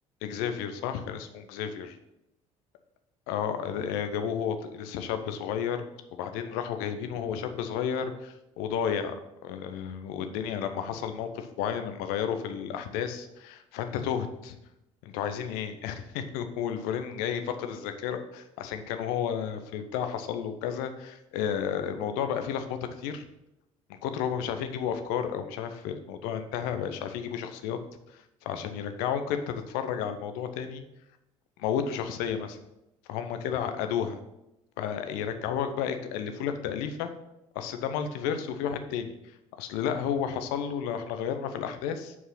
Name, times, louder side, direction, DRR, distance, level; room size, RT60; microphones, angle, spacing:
voice 1, 0.2-2.0 3.3-5.8 6.1-14.6 15.0-23.2 23.9-27.8 28.1-30.8 31.6-32.6 33.1-34.2 34.8-37.1 37.5-39.1 39.6-42.1, left 8 dB, 60° left, 8 dB, 0.8 m, -32 dB
8.4 x 4.8 x 5.7 m, 0.89 s
figure-of-eight pair, 50°, 18 cm